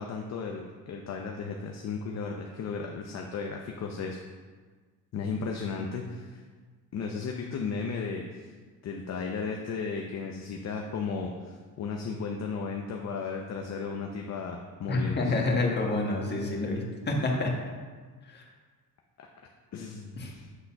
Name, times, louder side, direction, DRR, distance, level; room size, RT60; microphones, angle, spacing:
voice 1, 0.0-4.2 5.1-6.4 6.9-8.5 8.8-15.3 19.2-19.3 19.7-20.5, left 5 dB, 45° left, 1 dB, 0.7 m, -35 dB
voice 2, 14.9-17.5 18.3-18.4 20.2-20.3, left 2 dB, 30° left, 0 dB, 1.4 m, -28 dB
8.2 x 3.9 x 5.7 m, 1.5 s
cardioid pair, 125°, 37 cm